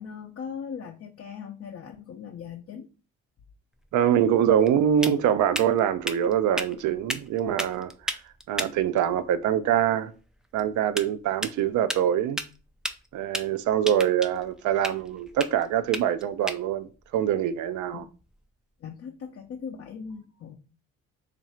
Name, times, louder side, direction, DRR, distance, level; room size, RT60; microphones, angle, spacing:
voice 1, 0.0-2.9 17.9-18.1 18.8-20.6, left 7 dB, 50° left, 0.5 m, -39 dB
sound 1, 3.7-18.5, right 1 dB, ahead, 0.3 m, -38 dB
voice 2, 3.9-8.2 8.5-10.1 10.5-12.4 13.1-18.0, right 9 dB, 75° right, 0.5 m, -24 dB
3.1 x 2.5 x 4.3 m
cardioid pair, 90°, 30 cm